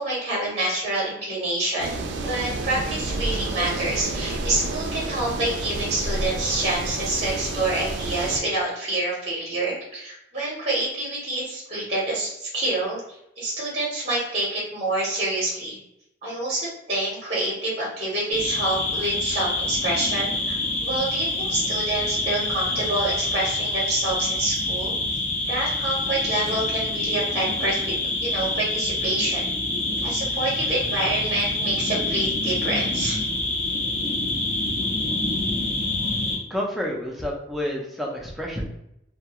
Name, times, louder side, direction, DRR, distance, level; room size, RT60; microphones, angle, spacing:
voice 1, 0.0-13.0 13.4-15.8 16.2-24.9 25.5-29.5 30.0-33.2, right 2 dB, 35° right, -5 dB, 0.7 m, -27 dB
sound 1, 1.8-8.4, right 2 dB, 70° right, 0.3 m, -30 dB
sound 2, 18.3-36.4, left 2 dB, 45° left, 0.7 m, -26 dB
voice 2, 36.5-38.7, equal, ahead, -2 dB, 0.4 m, -29 dB
2.3 x 2.2 x 2.8 m, 0.80 s
head